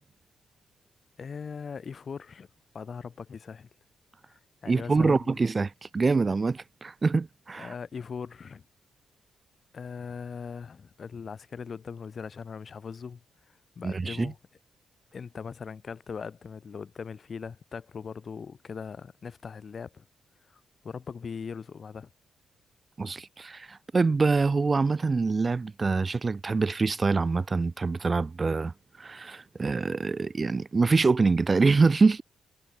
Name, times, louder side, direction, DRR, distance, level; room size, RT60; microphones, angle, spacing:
voice 1, 1.2-2.5 2.7-3.7 4.3-5.4 7.6-8.6 9.7-13.2 13.8-14.4 15.1-20.0 20.5-22.1, left 6 dB, 50° left, 2.1 m, -40 dB
voice 2, 4.7-7.7 13.8-14.3 23.0-32.2, right 4 dB, 35° right, 0.7 m, -25 dB
supercardioid pair, 60°, 0 cm